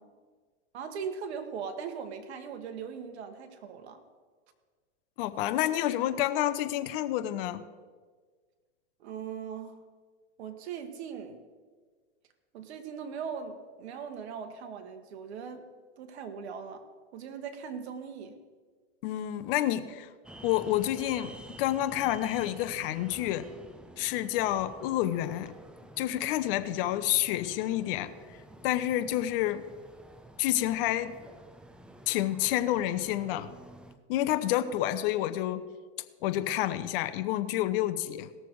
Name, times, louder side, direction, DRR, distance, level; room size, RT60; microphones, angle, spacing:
voice 1, 0.7-4.0 9.0-9.8 10.4-11.4 12.5-15.7 16.0-16.8 17.1-18.4, right 6 dB, 70° right, 7 dB, 1.6 m, -39 dB
voice 2, 5.2-7.6 19.0-20.1 20.4-23.4 24.0-25.5 26.0-28.1 28.6-29.6 30.4-31.1 32.1-33.5 34.1-35.6 36.2-38.3, left 13 dB, 55° left, 11 dB, 0.9 m, -29 dB
sound 1, 20.2-34.0, right 1 dB, 5° right, 0.3 m, -50 dB
17.5 x 6.8 x 4.7 m, 1.5 s
hypercardioid pair, 125°, 34 cm